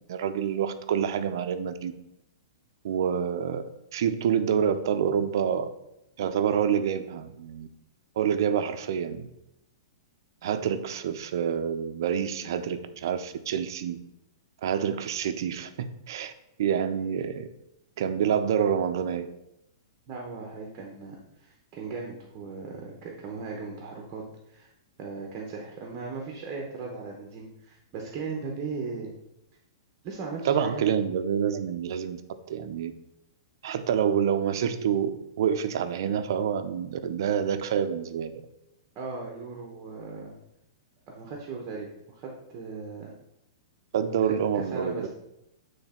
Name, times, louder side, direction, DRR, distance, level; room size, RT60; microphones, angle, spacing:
voice 1, 0.1-1.9 2.8-3.6 3.9-5.7 6.2-7.7 8.2-9.3 10.4-14.0 14.6-16.3 16.6-17.5 18.0-19.3 30.4-32.2 32.5-32.9 33.6-38.3 43.9-45.1, right 8 dB, 55° right, 9 dB, 0.6 m, -27 dB
voice 2, 20.1-24.7 25.0-29.1 30.0-30.8 38.9-40.4 41.1-43.1 44.5-45.1, right 4 dB, 25° right, 0 dB, 0.9 m, -38 dB
8.9 x 3.3 x 4.3 m, 0.85 s
hypercardioid pair, 170°, 2 cm